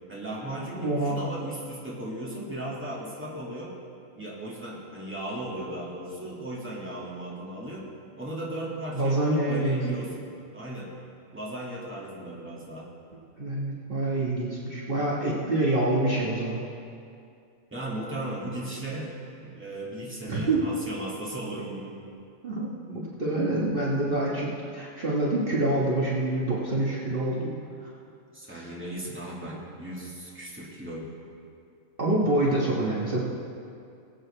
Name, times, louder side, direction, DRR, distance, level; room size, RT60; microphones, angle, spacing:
voice 1, 0.1-3.8 4.2-7.9 8.2-10.9 11.3-12.9 17.7-19.2 19.4-22.0 28.3-31.1, right 1 dB, 10° right, -5 dB, 2.0 m, -36 dB
voice 2, 0.8-1.3 8.9-10.0 13.4-16.6 20.3-20.6 22.4-27.5 27.8-27.9 28.5-28.7 32.0-33.2, right 2 dB, 45° right, -6 dB, 1.5 m, -26 dB
21.0 x 7.9 x 3.3 m, 2.5 s
omnidirectional pair, 1.4 m